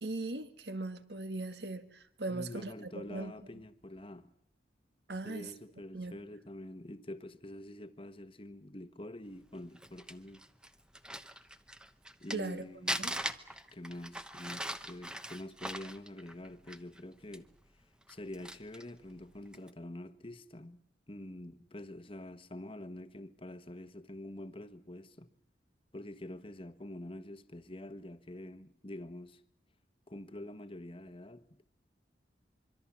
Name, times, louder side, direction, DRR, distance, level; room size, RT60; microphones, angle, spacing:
voice 1, 0.0-3.3 5.1-5.5 5.9-6.1 12.3-13.2, right 2 dB, 65° right, 1.9 m, -39 dB
voice 2, 2.3-4.3 5.2-10.4 12.2-13.3 13.7-17.5 18.1-20.8 21.1-25.3 25.9-29.4 30.1-31.4, left 1 dB, 30° left, 1.3 m, -46 dB
Crumpling crinkling, 9.5-12.5 12.9-17.0 17.3-17.4 18.0-18.9 19.5-19.7, right 1 dB, 5° right, 1.0 m, -40 dB
25.5 x 24.0 x 7.3 m
head